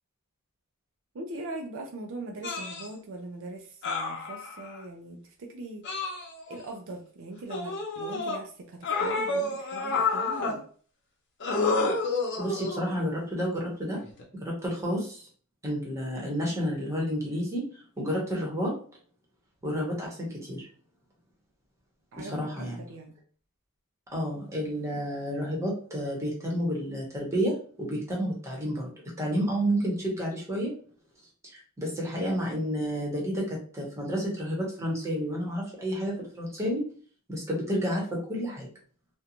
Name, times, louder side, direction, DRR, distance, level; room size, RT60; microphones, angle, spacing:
voice 1, 1.1-5.8 6.5-10.6 18.0-18.1 22.1-22.5 22.8-23.1, right 2 dB, 60° right, 3 dB, 0.4 m, -41 dB
sound 1, 2.4-2.9 3.8-4.8 5.8-6.7 7.5-8.4 8.8-10.6 11.4-12.9 14.0-14.2, left 3 dB, 55° left, 0.7 m, -29 dB
voice 2, 12.4-14.0 14.4-15.2 15.6-17.7 18.0-18.7 19.6-20.6 22.2-22.8 24.1-28.9 29.2-30.7 31.4-36.9 37.3-38.7, equal, 15° right, -3 dB, 0.9 m, -30 dB
2.5 x 2.2 x 2.8 m, 0.43 s
head